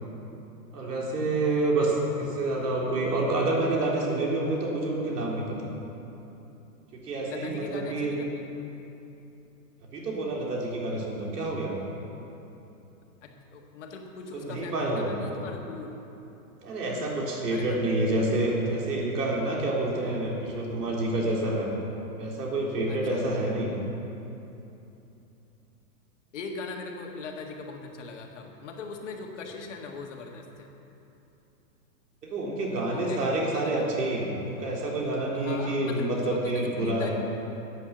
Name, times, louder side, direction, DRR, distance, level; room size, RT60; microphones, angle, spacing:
voice 1, 0.7-5.7 6.9-8.1 9.9-11.7 14.3-15.1 16.6-21.7 22.2-23.7 32.2-37.1, right 2 dB, 85° right, -2 dB, 3.6 m, -28 dB
voice 2, 7.2-8.5 13.2-16.0 17.5-17.8 22.9-23.2 26.3-30.7 32.9-33.8 35.3-37.1, left 4 dB, 50° left, 2 dB, 1.7 m, -40 dB
12.5 x 8.6 x 7.4 m, 2.9 s
supercardioid pair, 180°, 46 cm